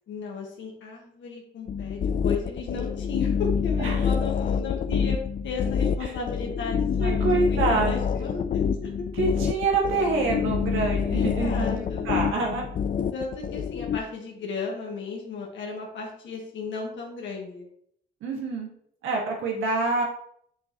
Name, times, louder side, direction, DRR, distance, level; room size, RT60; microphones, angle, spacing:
voice 1, 0.1-9.1 11.1-12.1 13.1-17.7, left 4 dB, 70° left, -1 dB, 1.5 m, -35 dB
sound 1, 1.7-14.0, left 7 dB, 45° left, 0.4 m, -27 dB
voice 2, 7.0-8.0 9.1-12.6 18.2-18.7 19.0-20.0, right 3 dB, 90° right, 0 dB, 1.9 m, -26 dB
6.3 x 6.2 x 3.0 m, 0.68 s
cardioid pair, 90°, 20 cm